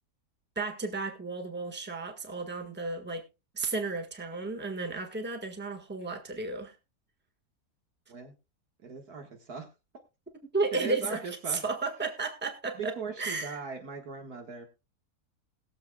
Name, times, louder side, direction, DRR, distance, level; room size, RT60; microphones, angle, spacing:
voice 1, 0.5-3.2 3.5-6.8 10.5-11.2 11.5-13.6, right 3 dB, 5° right, 1.5 m, -33 dB
voice 2, 8.8-9.7 10.7-11.7 12.7-14.7, right 5 dB, 80° right, 2.1 m, -39 dB
21.5 x 7.3 x 2.3 m
omnidirectional pair, 1.6 m